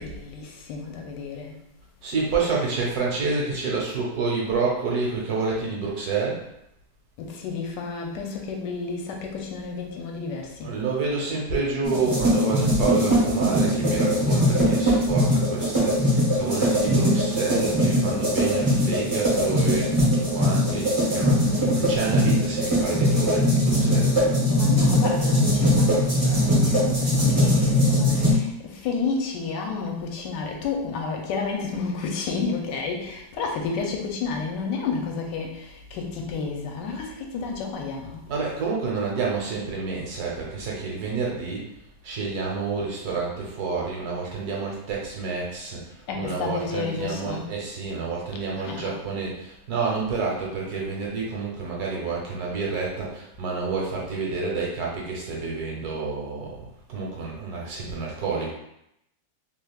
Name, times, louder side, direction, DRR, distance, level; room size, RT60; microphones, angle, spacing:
voice 1, 0.0-1.6 7.2-10.8 24.5-38.2 46.1-47.5 48.5-49.0, left 4 dB, 80° left, 1 dB, 1.2 m, -31 dB
voice 2, 2.0-6.4 10.6-21.4 21.7-24.1 38.3-41.6 42.0-58.5, right 4 dB, 65° right, -2 dB, 1.2 m, -29 dB
sound 1, 11.8-28.3, equal, 20° right, 0.9 m, -21 dB
3.4 x 3.0 x 2.3 m, 0.80 s
omnidirectional pair, 1.9 m